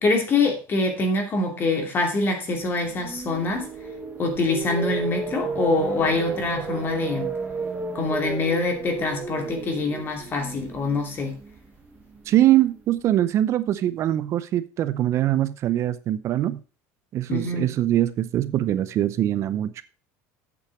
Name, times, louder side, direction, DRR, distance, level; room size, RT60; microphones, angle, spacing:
voice 1, 0.0-3.7 4.2-7.3 7.9-11.3 17.3-17.7, left 3 dB, 30° left, 3 dB, 2.6 m, -25 dB
sound 1, 2.7-12.8, right 4 dB, 15° right, 1.3 m, -33 dB
voice 2, 12.3-16.6 17.1-19.8, right 13 dB, 40° right, 15 dB, 0.6 m, -22 dB
8.5 x 6.8 x 4.7 m, 0.33 s
cardioid pair, 145°, 7 cm